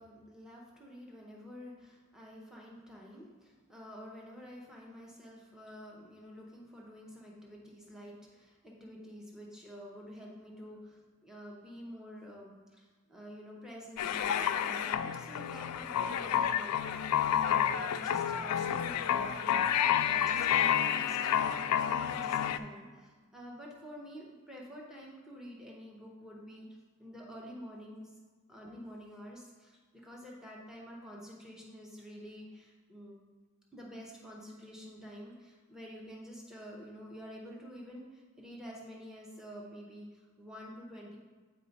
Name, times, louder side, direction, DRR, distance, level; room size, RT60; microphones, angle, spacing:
voice 1, 0.0-26.7 27.0-28.1 28.5-33.2 33.7-41.2, equal, 5° right, -3 dB, 0.8 m, -49 dB
sound 1, 14.0-22.6, left 9 dB, 85° left, 0.3 m, -30 dB
8.2 x 4.2 x 4.0 m, 1.4 s
head